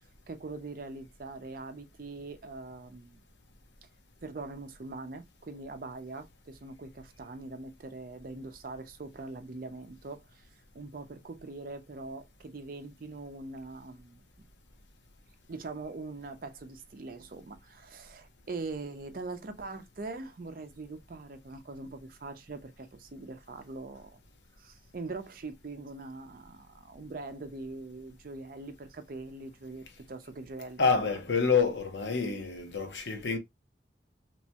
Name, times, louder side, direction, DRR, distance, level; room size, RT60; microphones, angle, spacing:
voice 1, 0.3-3.2 4.2-10.5 10.7-14.2 15.5-24.2 24.6-30.9, right 3 dB, 50° right, 0.5 m, -42 dB
voice 2, 30.8-33.4, left 5 dB, 85° left, 0.7 m, -27 dB
3.0 x 2.1 x 2.8 m
head